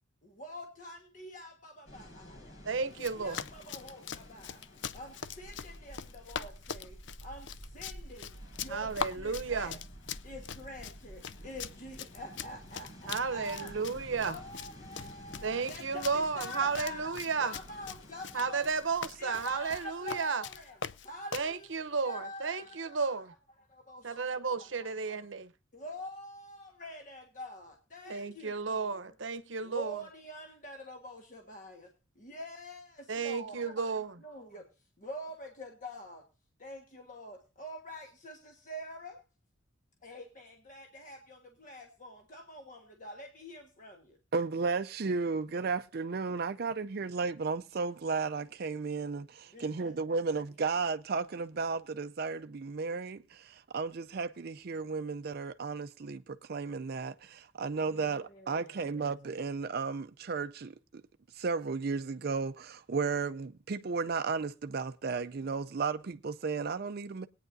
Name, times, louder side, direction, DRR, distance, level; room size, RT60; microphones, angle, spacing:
voice 1, 0.2-2.6 3.0-4.6 4.9-9.8 10.2-13.8 14.2-17.1 17.4-18.7 19.2-23.2 23.7-25.1 25.7-29.0 29.6-34.7 35.0-36.2 36.6-39.2 40.0-44.2 49.5-49.9 57.8-59.1, left 1 dB, 40° left, 1.5 m, -46 dB
sound 1, 1.8-19.7, equal, 85° left, 7.0 m, -51 dB
voice 2, 2.6-3.4 8.7-9.7 13.1-14.4 15.4-17.6 18.3-20.4 21.3-23.3 24.0-25.5 28.1-30.0 33.1-34.2, right 5 dB, 70° right, 0.8 m, -33 dB
Run, 2.9-21.5, left 7 dB, 65° left, 0.5 m, -43 dB
voice 3, 44.3-61.0 61.3-67.3, right 4 dB, 50° right, 0.5 m, -34 dB
21.5 x 9.1 x 2.6 m
head